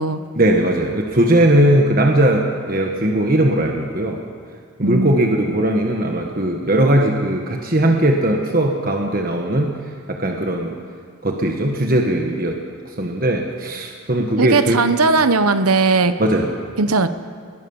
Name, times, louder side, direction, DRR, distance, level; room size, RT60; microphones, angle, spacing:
voice 1, 0.3-4.2 4.8-9.7 10.1-10.7 11.2-12.6 13.0-14.8 16.2-16.5, right 1 dB, 40° right, 2 dB, 1.4 m, -18 dB
voice 2, 4.8-5.4 14.4-16.1 16.8-17.1, right 3 dB, 90° right, 11 dB, 1.0 m, -17 dB
21.0 x 17.0 x 7.2 m, 2.2 s
head